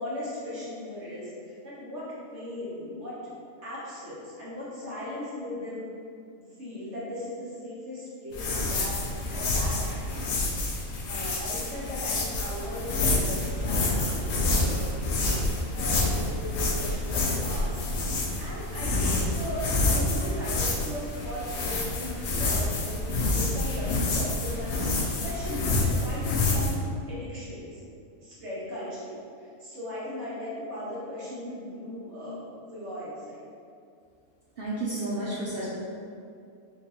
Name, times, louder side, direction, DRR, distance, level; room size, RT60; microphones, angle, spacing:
voice 1, 0.0-2.0 2.3-3.1 3.6-5.9 6.4-9.0 9.3-10.0 10.6-10.7 11.1-22.1 22.4-23.0 23.3-26.8 27.1-27.8 28.2-32.4 32.7-33.4, left 1 dB, 55° right, -9 dB, 1.3 m, -38 dB
sound 1, 8.3-26.7, left 2 dB, 70° left, 1.0 m, -28 dB
voice 2, 34.6-35.7, right 2 dB, 85° right, -7 dB, 0.5 m, -31 dB
3.6 x 2.6 x 2.8 m, 2.4 s
omnidirectional pair, 1.5 m